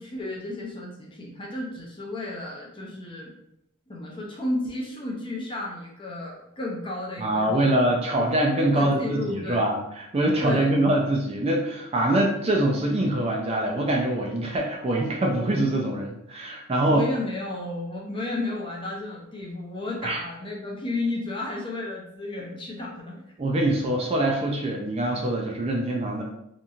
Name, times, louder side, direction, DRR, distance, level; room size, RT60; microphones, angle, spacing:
voice 1, 0.0-3.3 3.9-7.7 8.2-8.3 8.7-9.6 10.4-10.8 16.8-23.2, left 2 dB, 25° left, -2 dB, 0.5 m, -33 dB
voice 2, 7.2-17.0 20.0-20.2 23.4-26.2, right 1 dB, 30° right, 0 dB, 0.3 m, -24 dB
2.9 x 2.5 x 2.3 m, 0.79 s
head